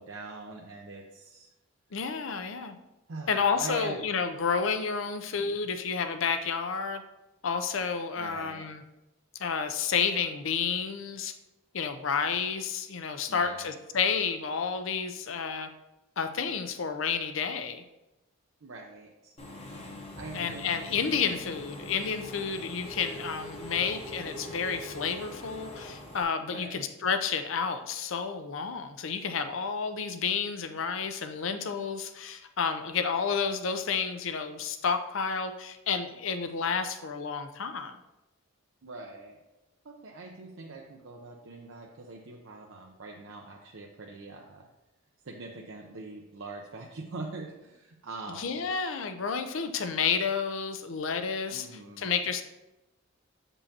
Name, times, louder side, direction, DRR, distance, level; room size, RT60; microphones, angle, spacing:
voice 1, 0.0-1.5 3.1-4.0 8.2-8.7 13.3-13.7 18.6-19.3 20.2-21.0 26.5-26.9 38.8-39.4 39.8-44.7 45.2-48.6 51.5-52.1, right 3 dB, 70° right, 0 dB, 0.6 m, -43 dB
voice 2, 1.9-2.8 3.3-7.0 7.4-8.8 9.4-11.3 11.7-15.7 16.2-17.8 20.3-37.9 48.3-51.7 52.0-52.4, left 6 dB, 70° left, 8 dB, 0.5 m, -30 dB
Engine / Mechanisms, 19.4-26.2, left 1 dB, 30° left, 0.8 m, -43 dB
7.2 x 5.4 x 2.8 m, 0.97 s
head